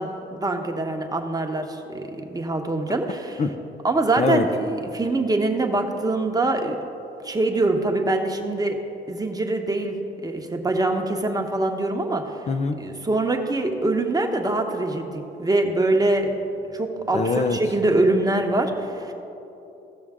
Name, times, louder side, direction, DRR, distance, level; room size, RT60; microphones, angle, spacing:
voice 1, 0.0-3.4 3.8-6.8 7.2-8.8 9.1-10.0 10.2-12.4 12.8-16.3 16.7-19.1, right 2 dB, 20° right, 3 dB, 1.0 m, -24 dB
voice 2, 12.5-12.8 17.1-17.6, left 4 dB, 35° left, 6 dB, 0.5 m, -23 dB
16.0 x 6.3 x 3.6 m, 2.9 s
cardioid pair, 90°, 20 cm